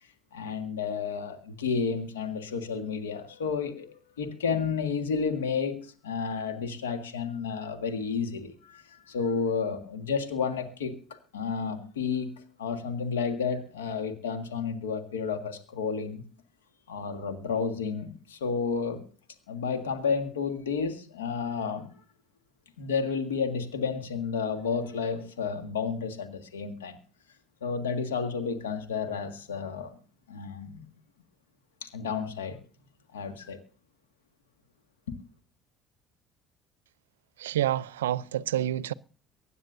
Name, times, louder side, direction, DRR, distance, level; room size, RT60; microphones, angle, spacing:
voice 1, 0.3-12.3 12.6-16.2 16.9-19.0 19.5-21.9 22.8-27.0 27.6-29.9 30.3-30.8 31.8-32.6 33.1-33.6 35.1-35.2, left 5 dB, 90° left, 1.8 m, -31 dB
voice 2, 37.4-38.9, right 12 dB, 85° right, 0.4 m, -28 dB
24.0 x 9.5 x 2.6 m
hypercardioid pair, 65°, 0 cm